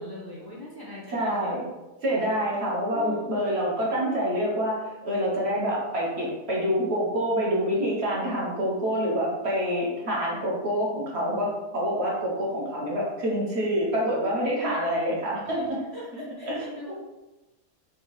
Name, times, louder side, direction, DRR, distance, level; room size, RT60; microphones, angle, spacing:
voice 1, 0.0-1.6 2.9-3.4 15.4-16.9, left 1 dB, 30° left, -6 dB, 0.4 m, -42 dB
voice 2, 1.1-1.7 2.0-15.8 16.4-16.9, equal, 50° right, -5 dB, 1.0 m, -27 dB
3.6 x 2.8 x 3.1 m, 1.1 s
omnidirectional pair, 1.7 m